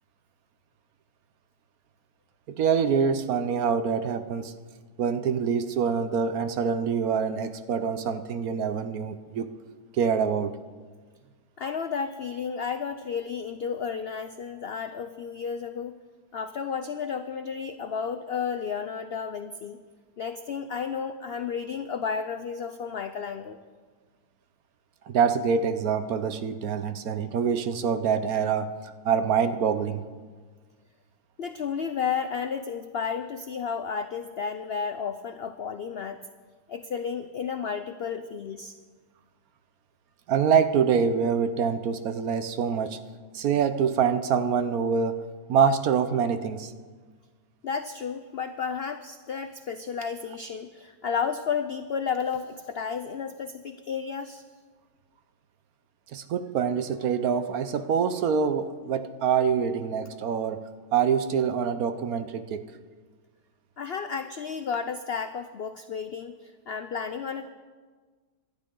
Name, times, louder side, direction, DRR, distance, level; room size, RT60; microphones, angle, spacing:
voice 1, 2.5-4.5 5.0-9.5 9.9-10.6 25.1-28.7 29.0-30.0 40.3-43.0 43.3-45.2 45.5-46.7 56.1-60.6 60.9-62.7, right 6 dB, 65° right, 10 dB, 1.2 m, -25 dB
voice 2, 11.6-16.0 16.3-19.8 20.2-23.6 31.4-36.2 36.7-38.7 47.6-54.4 63.8-67.5, left 6 dB, 80° left, 9 dB, 0.5 m, -32 dB
25.5 x 11.5 x 3.8 m, 1.5 s
omnidirectional pair, 1.8 m